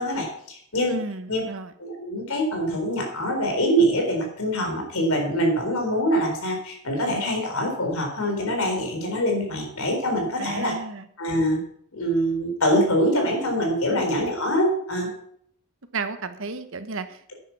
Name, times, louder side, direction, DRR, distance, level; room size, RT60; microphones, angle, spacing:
voice 1, 0.0-1.0 1.3-1.4 1.8-10.7 11.2-11.6 11.9-15.1, equal, 80° left, 2 dB, 4.3 m, -24 dB
voice 2, 0.9-1.7 10.4-11.1 13.9-14.1 15.9-17.3, right 3 dB, 65° right, 10 dB, 1.1 m, -33 dB
10.5 x 9.6 x 6.0 m, 0.65 s
head